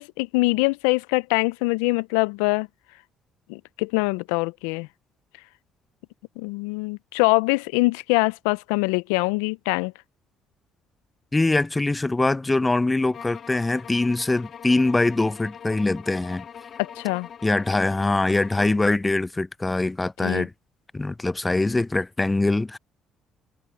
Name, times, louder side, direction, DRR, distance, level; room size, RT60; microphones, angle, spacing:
voice 1, 0.0-2.7 3.5-4.9 6.4-9.9 16.8-17.3 20.2-20.5, left 25 dB, 85° left, 0.4 m, -23 dB
voice 2, 11.3-16.4 17.4-20.5 20.9-22.8, left 2 dB, 20° left, 0.6 m, -23 dB
sound 1, 13.1-18.9, left 8 dB, 55° left, 1.5 m, -43 dB
hypercardioid pair, 55°, 0 cm